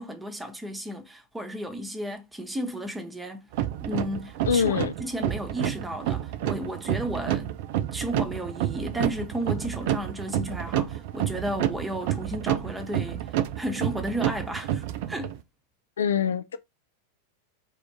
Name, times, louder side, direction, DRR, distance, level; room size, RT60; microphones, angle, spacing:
voice 1, 0.0-3.5 3.8-7.5 7.9-13.3 13.6-15.4, equal, 10° right, 0.7 m, -33 dB
sound 1, 3.5-15.4, right 11 dB, 50° right, 0.3 m, -29 dB
voice 2, 4.5-4.9 16.0-16.6, left 7 dB, 65° left, 0.3 m, -24 dB
3.4 x 2.5 x 3.3 m
figure-of-eight pair, 90°, 0 cm